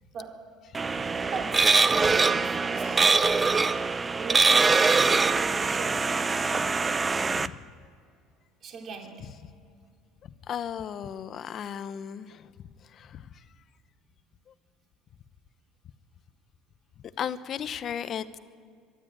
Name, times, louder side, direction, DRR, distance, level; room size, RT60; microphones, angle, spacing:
voice 1, 0.1-0.5 1.3-3.5 4.2-4.9 5.6-6.2 8.6-9.4, right 4 dB, 40° right, 2 dB, 2.8 m, -40 dB
sound 1, 0.7-7.5, right 4 dB, 20° right, 0.5 m, -23 dB
voice 2, 0.8-1.2 2.8-3.2 3.5-4.0 6.4-6.6 7.0-7.6 10.2-12.5 12.8-13.4 14.5-14.6 17.0-18.4, left 8 dB, 45° left, 13 dB, 0.9 m, -37 dB
23.0 x 12.5 x 9.0 m, 2.3 s
cardioid pair, 120°, 0 cm